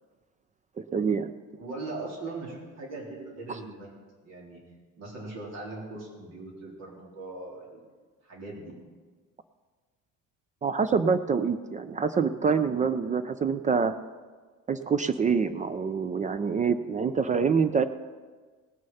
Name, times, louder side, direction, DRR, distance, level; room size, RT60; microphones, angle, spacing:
voice 1, 0.8-1.3 3.5-3.6 10.6-14.0 14.7-17.8, right 5 dB, 25° right, 11 dB, 0.3 m, -26 dB
voice 2, 1.6-3.9 4.2-4.6 5.0-7.8 8.2-8.7, right 2 dB, 55° right, -2 dB, 3.8 m, -40 dB
18.0 x 6.5 x 5.6 m, 1.4 s
cardioid pair, 150°, 32 cm